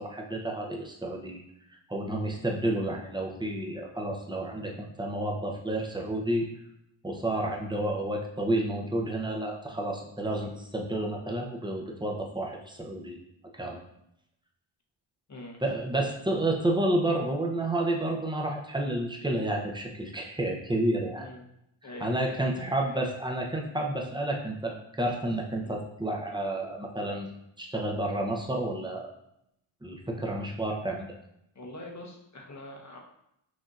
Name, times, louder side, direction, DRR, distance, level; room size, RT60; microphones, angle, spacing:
voice 1, 0.0-1.4 1.9-6.5 7.0-13.2 13.5-13.8 15.6-21.3 21.8-29.1 29.8-31.1, right 1 dB, 10° right, 0 dB, 0.7 m, -30 dB
voice 2, 15.3-15.6 16.0-16.1 16.5-16.6 21.2-21.4 21.8-23.1 25.6-25.8 31.5-33.0, left 1 dB, 35° left, 0 dB, 0.9 m, -44 dB
6.3 x 2.7 x 2.5 m, 0.79 s
cardioid pair, 75°, 50 cm